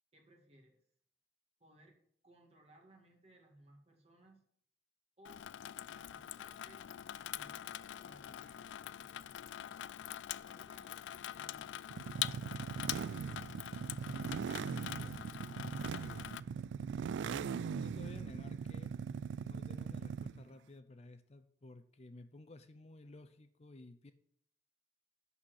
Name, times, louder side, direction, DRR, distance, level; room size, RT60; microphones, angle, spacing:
voice 1, 0.1-0.8 1.6-2.0 2.2-4.4 5.2-5.4 5.9-6.9 7.1-9.5 10.3-13.1, right 1 dB, 35° right, 2 dB, 1.9 m, -63 dB
Water tap faucet / Sink (filling or washing), 5.2-16.4, left 12 dB, 85° left, 0.3 m, -44 dB
sound 1, 11.9-20.5, right 6 dB, 80° right, 0.3 m, -40 dB
voice 2, 14.0-16.4 17.2-18.9 19.4-24.1, left 2 dB, 35° left, 10 dB, 0.5 m, -54 dB
11.5 x 4.2 x 6.4 m, 0.64 s
head